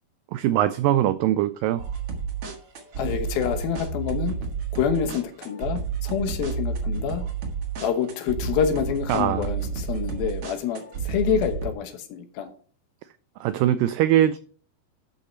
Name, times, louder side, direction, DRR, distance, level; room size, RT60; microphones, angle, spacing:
voice 1, 0.3-1.8 9.1-9.5 13.4-14.4, right 12 dB, 90° right, 13 dB, 1.9 m, -22 dB
sound 1, 1.8-11.7, right 5 dB, 50° right, 2.0 m, -31 dB
voice 2, 3.0-4.4 4.7-7.2 7.8-12.5, left 8 dB, 75° left, 8 dB, 2.8 m, -27 dB
11.5 x 5.6 x 4.4 m, 0.43 s
omnidirectional pair, 4.4 m